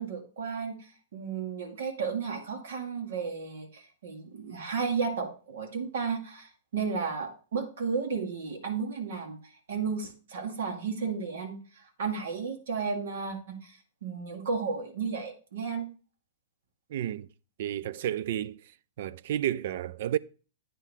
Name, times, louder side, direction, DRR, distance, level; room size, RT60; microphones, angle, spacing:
voice 1, 0.0-15.9, right 5 dB, 75° right, 1.9 m, -33 dB
voice 2, 16.9-17.3 17.6-18.6 19.0-20.2, right 11 dB, 55° right, 0.4 m, -31 dB
9.1 x 3.8 x 6.4 m
hypercardioid pair, 155°, 0 cm